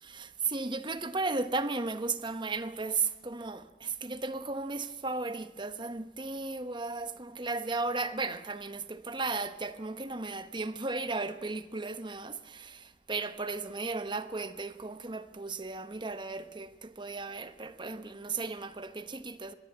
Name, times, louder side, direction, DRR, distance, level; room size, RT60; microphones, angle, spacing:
voice 1, 0.1-19.5, right 3 dB, 25° right, 1.1 m, -35 dB
24.5 x 21.5 x 7.9 m
head